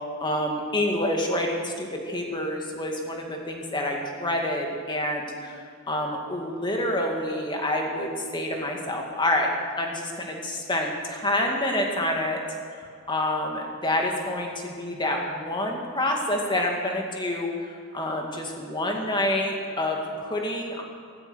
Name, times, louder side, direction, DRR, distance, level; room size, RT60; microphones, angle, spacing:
voice 1, 0.2-5.6 5.9-9.5 9.8-12.4 12.8-17.5 17.9-20.8, left 1 dB, 25° left, 1 dB, 2.2 m, -27 dB
15.5 x 14.0 x 6.4 m, 2.1 s
head